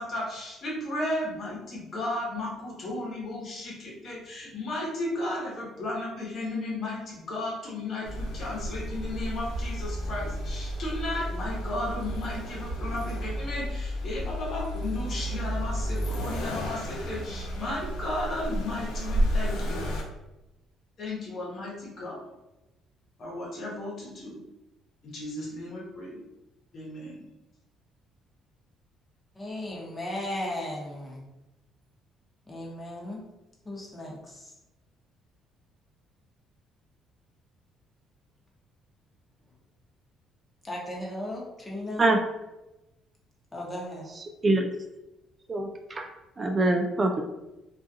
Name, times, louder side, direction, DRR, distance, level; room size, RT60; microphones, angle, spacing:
voice 1, 0.0-19.8 21.0-22.3 23.2-24.4 25.0-26.2 26.7-27.2, left 2 dB, 55° left, -4 dB, 1.0 m, -34 dB
Accelerating revving vroom, 8.0-20.0, equal, 80° left, 0.5 m, -32 dB
voice 2, 29.4-31.2 32.5-33.2 33.6-34.4 40.6-42.1 43.5-44.1, left 1 dB, 20° left, -3 dB, 0.9 m, -36 dB
voice 3, 45.5-46.0 46.4-47.2, right 2 dB, 35° right, 4 dB, 0.3 m, -24 dB
2.4 x 2.3 x 2.6 m, 0.97 s
supercardioid pair, 70°, 0 cm